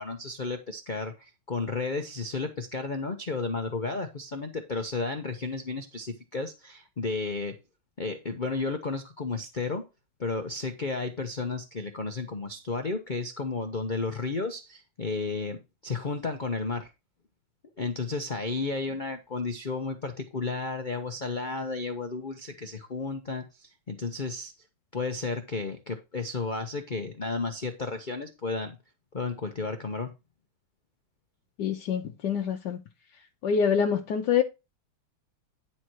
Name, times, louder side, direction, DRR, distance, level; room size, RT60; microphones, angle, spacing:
voice 1, 0.0-7.5 8.0-9.8 10.2-16.9 17.8-24.5 24.9-28.8 29.1-30.1, left 3 dB, 50° left, 0.6 m, -33 dB
voice 2, 31.6-32.8 33.4-34.4, left 7 dB, 65° left, 1.3 m, -26 dB
10.0 x 4.4 x 4.6 m
omnidirectional pair, 2.2 m